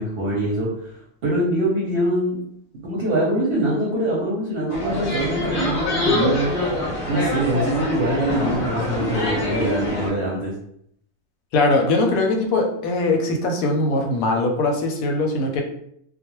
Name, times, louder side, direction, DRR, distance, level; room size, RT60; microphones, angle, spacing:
voice 1, 0.0-2.4 2.8-6.5 7.1-10.5, right 1 dB, 55° right, -4 dB, 0.7 m, -23 dB
sound 1, 4.7-10.1, left 1 dB, 45° left, 0.8 m, -25 dB
voice 2, 11.5-15.6, left 2 dB, 90° left, 3 dB, 1.0 m, -21 dB
2.3 x 2.2 x 2.9 m, 0.70 s
omnidirectional pair, 1.4 m